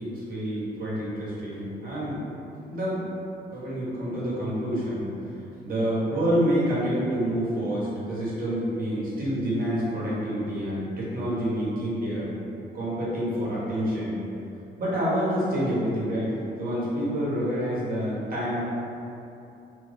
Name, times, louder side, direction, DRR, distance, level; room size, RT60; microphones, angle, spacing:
voice 1, 0.0-2.3 2.7-3.1 3.5-5.3 5.6-12.3 12.7-14.2 14.8-16.3 16.6-18.6, equal, 45° right, -8 dB, 1.2 m, -28 dB
2.9 x 2.4 x 3.6 m, 2.8 s
cardioid pair, 90°, 20 cm